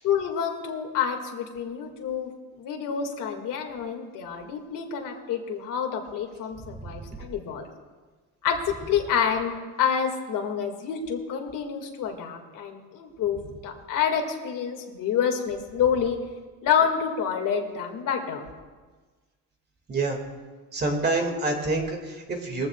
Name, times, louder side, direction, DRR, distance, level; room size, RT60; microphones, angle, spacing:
voice 1, 0.0-2.3 2.6-7.7 8.4-16.2 16.6-18.4, left 7 dB, 75° left, 3 dB, 2.0 m, -28 dB
voice 2, 6.6-7.3 13.4-13.5 19.9-20.2 20.7-22.7, right 3 dB, 30° right, 3 dB, 2.0 m, -28 dB
22.0 x 15.0 x 2.3 m, 1.4 s
cardioid pair, 155°, 33 cm